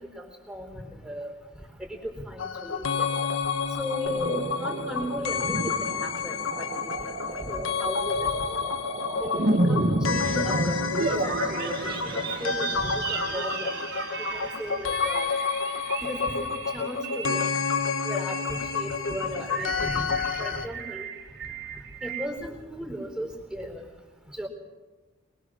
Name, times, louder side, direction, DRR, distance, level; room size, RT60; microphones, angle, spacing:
voice 1, 0.0-1.3 1.8-3.1 3.8-8.6 9.2-10.8 11.1-13.7 14.3-15.3 16.0-17.6 18.0-21.0 22.0-23.9 24.3-24.5, equal, 5° right, 1 dB, 4.1 m, -36 dB
sound 1, 2.4-20.7, left 5 dB, 85° left, 1.1 m, -30 dB
sound 2, 4.1-22.3, right 2 dB, 50° right, 1.6 m, -32 dB
sound 3, 10.2-16.3, right 4 dB, 65° right, 2.0 m, -41 dB
23.5 x 22.0 x 6.4 m, 1.3 s
head